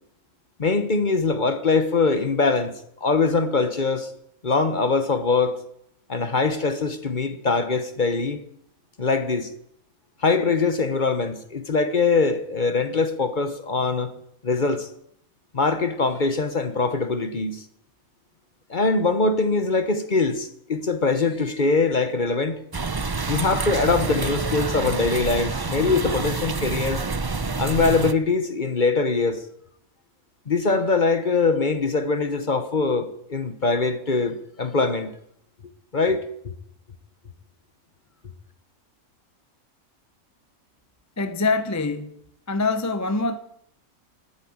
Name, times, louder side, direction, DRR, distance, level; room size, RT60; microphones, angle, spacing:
voice 1, 0.6-2.7 3.0-4.1 4.4-5.6 6.1-8.4 9.0-9.5 10.2-14.1 14.4-14.9 15.5-17.6 18.7-22.6 23.3-27.0 27.6-29.4 30.5-35.1 35.9-36.2, left 4 dB, 35° left, 1.1 m, -22 dB
sound 1, 22.7-28.1, right 4 dB, 35° right, 0.3 m, -27 dB
voice 2, 41.2-42.2 42.5-43.4, left 3 dB, 15° left, 0.7 m, -24 dB
13.0 x 9.9 x 8.8 m
omnidirectional pair, 1.5 m